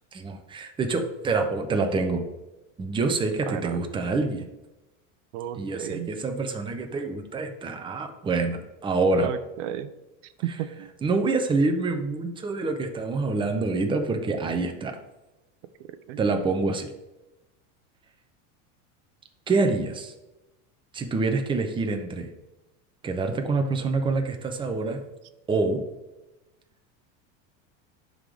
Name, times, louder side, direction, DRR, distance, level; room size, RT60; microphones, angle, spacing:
voice 1, 0.1-2.2 2.8-4.5 5.5-9.3 11.0-15.0 16.2-16.9 19.5-20.1 20.9-22.3 23.0-25.0 25.5-25.8, right 3 dB, 15° right, 4 dB, 0.7 m, -26 dB
voice 2, 3.5-3.8 5.3-6.1 9.1-9.9 10.4-10.9 16.1-16.2, right 11 dB, 75° right, 12 dB, 0.7 m, -33 dB
11.0 x 3.8 x 3.4 m, 0.98 s
supercardioid pair, 135°, 37 cm